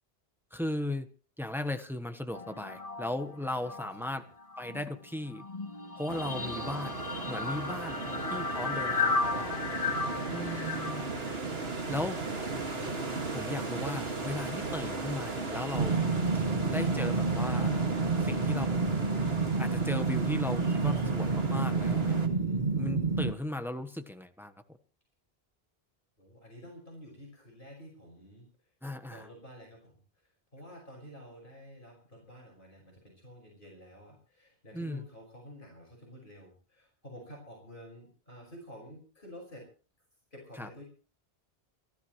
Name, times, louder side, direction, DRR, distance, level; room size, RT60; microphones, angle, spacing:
voice 1, 0.5-1.1 1.4-4.2 4.6-5.4 5.9-7.0 7.3-9.6 10.3-11.1 11.9-12.2 13.3-16.1 16.7-17.8 18.2-18.8 19.6-22.2 22.8-24.5 28.8-29.3 34.7-35.0 40.6-40.7, left 1 dB, ahead, 8 dB, 1.0 m, -36 dB
sound 1, 2.3-4.1 4.4-11.3, left 4 dB, 35° left, 1.5 m, -35 dB
voice 2, 3.5-4.3 6.4-6.7 8.1-8.3 8.6-10.4 22.3-22.7 26.2-28.5 29.1-39.7 40.3-40.8, equal, 55° left, -1 dB, 5.6 m, -51 dB
sound 2, 6.1-22.3, right 3 dB, 70° right, 2.3 m, -36 dB
sound 3, 15.7-23.3, right 4 dB, 45° right, 1.3 m, -29 dB
29.0 x 12.0 x 3.1 m, 0.39 s
omnidirectional pair, 1.1 m